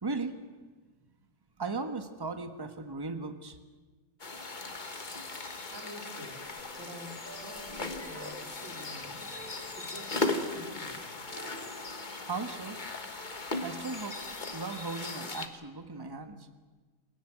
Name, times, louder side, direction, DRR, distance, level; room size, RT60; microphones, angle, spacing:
voice 1, 0.0-0.4 1.6-3.6 12.2-12.8 13.6-14.2 14.5-16.5, right 3 dB, 15° right, 8 dB, 1.2 m, -37 dB
sound 1, 4.2-15.5, left 3 dB, 25° left, 1.4 m, -38 dB
voice 2, 5.7-6.4 6.8-9.3 9.7-11.2, equal, 35° right, 2 dB, 3.3 m, -48 dB
sound 2, 6.4-13.3, right 1 dB, 5° left, 6.6 m, -51 dB
24.5 x 17.0 x 9.2 m, 1.3 s
omnidirectional pair, 2.2 m